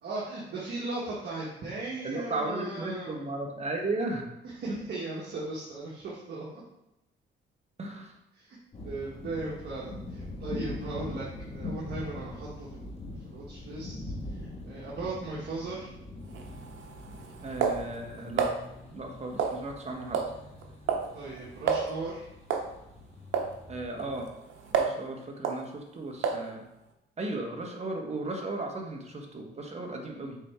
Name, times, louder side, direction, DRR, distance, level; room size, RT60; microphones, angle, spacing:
voice 1, 0.0-3.2 4.4-6.6 8.3-8.6 8.8-11.3 11.5-12.9 13.2-14.0 14.3-15.9 21.1-22.3, right 2 dB, 55° right, -5 dB, 1.4 m, -37 dB
voice 2, 2.0-4.2 4.7-4.8 7.8-8.1 17.4-18.5 18.9-20.2 23.7-24.3 24.7-26.6 27.2-30.4, right 2 dB, 35° right, 1 dB, 1.3 m, -35 dB
sound 1, 8.7-24.2, left 2 dB, 35° left, 1.7 m, -43 dB
sound 2, 16.3-18.6 19.4-19.8 20.1-20.4 20.6-21.1 21.4-21.5 21.7-21.9 22.5-22.7 23.3-23.5 24.0-25.0 25.4-25.6 26.2-26.5, right 6 dB, 80° right, 0.8 m, -30 dB
6.3 x 4.3 x 3.7 m, 0.88 s
cardioid pair, 90°, 20 cm